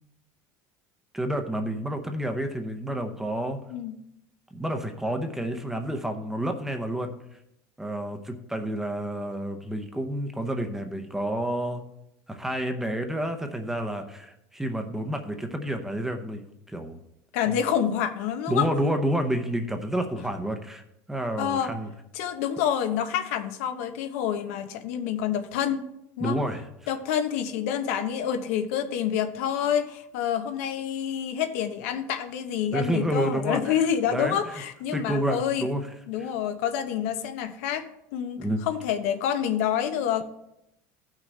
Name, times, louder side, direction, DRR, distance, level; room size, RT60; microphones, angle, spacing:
voice 1, 1.1-3.6 4.5-7.1 7.8-11.8 12.3-17.0 18.5-20.8 21.1-21.9 26.2-26.6 32.7-33.7 34.1-34.5 34.9-35.9 36.2-36.3 38.4-38.6, right 1 dB, 5° right, 5 dB, 0.7 m, -29 dB
voice 2, 17.3-18.7 21.4-21.7 22.1-25.9 26.2-26.4 26.9-35.7 36.1-40.2, left 9 dB, 80° left, 8 dB, 0.9 m, -28 dB
15.0 x 6.2 x 3.3 m, 0.82 s
cardioid pair, 150°, 8 cm